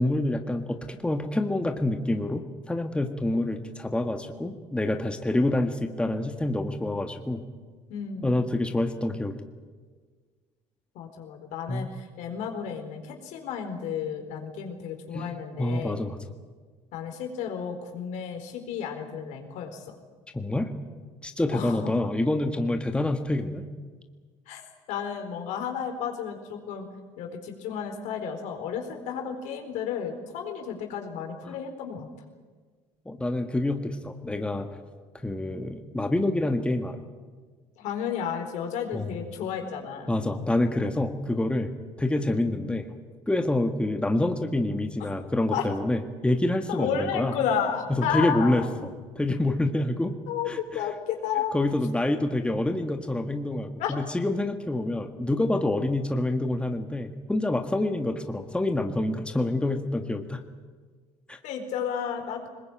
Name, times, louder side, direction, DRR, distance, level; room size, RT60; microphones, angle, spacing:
voice 1, 0.0-7.4 8.2-9.4 11.7-11.9 15.1-16.2 20.3-20.7 21.2-23.7 31.4-31.5 33.0-34.7 35.2-37.0 38.9-39.1 40.1-41.7 42.0-42.9 43.3-47.3 47.9-50.1 50.5-50.8 51.5-60.4 61.3-61.4, left 1 dB, 10° left, 5 dB, 1.7 m, -27 dB
voice 2, 7.9-8.4 10.9-16.0 16.9-19.8 21.5-21.9 24.5-24.6 24.9-26.9 27.2-32.1 37.8-40.1 45.5-45.7 46.7-48.7 50.3-51.5 53.8-54.0 61.4-62.5, left 7 dB, 75° left, 4 dB, 4.2 m, -32 dB
21.0 x 20.5 x 9.0 m, 1.5 s
supercardioid pair, 90°, 13 cm